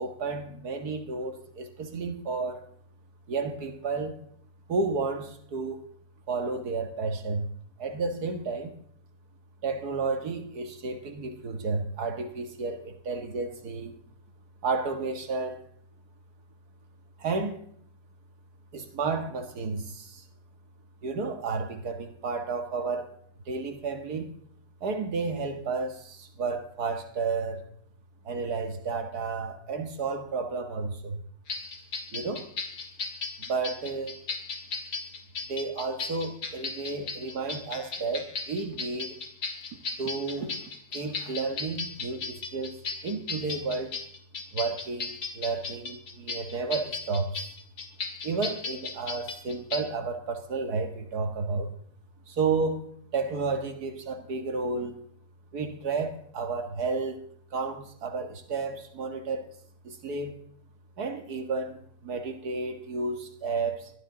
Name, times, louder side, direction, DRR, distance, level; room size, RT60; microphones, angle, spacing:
voice 1, 0.0-2.7 3.3-4.1 4.7-5.8 6.3-7.5 7.8-8.7 9.6-14.0 14.6-15.6 17.2-17.6 18.7-20.2 21.0-23.1 23.5-24.3 24.8-27.6 28.2-31.2 32.1-32.5 33.5-34.2 35.5-39.2 40.0-40.5 40.9-42.8 43.0-44.0 44.5-47.6 48.2-51.7 52.3-55.0 55.5-57.2 57.5-59.5 59.8-60.3 61.0-63.9, right 4 dB, 80° right, 6 dB, 2.1 m, -32 dB
sound 1, 31.5-49.8, left 4 dB, 65° left, 2.2 m, -36 dB
22.0 x 14.0 x 3.9 m, 0.65 s
omnidirectional pair, 1.6 m